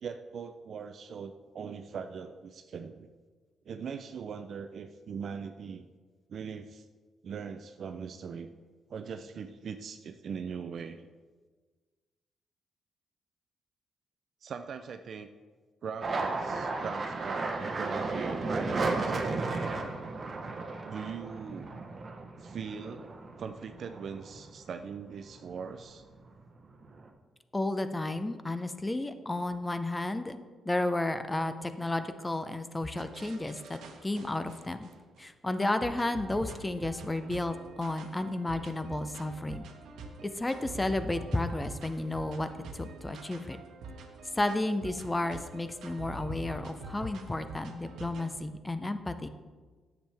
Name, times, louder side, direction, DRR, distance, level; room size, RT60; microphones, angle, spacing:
voice 1, 0.0-3.1 3.7-5.9 6.3-6.9 7.2-8.5 8.9-11.1 14.4-15.3 15.8-19.3 20.9-21.7 22.4-23.1 23.4-26.0, right 6 dB, 55° right, 8 dB, 0.4 m, -40 dB
sound 1, 16.0-24.7 25.1-25.9 26.2-27.1, right 3 dB, 40° right, 0.9 m, -34 dB
voice 2, 27.5-30.4 30.6-34.9 35.2-39.7 40.2-42.5 42.7-43.6 44.3-49.3, left 2 dB, 15° left, 10 dB, 0.5 m, -32 dB
sound 2, 32.9-35.2 35.8-48.3, right 2 dB, 80° right, 1.0 m, -46 dB
10.0 x 7.2 x 3.4 m, 1.4 s
cardioid pair, 115°, 0 cm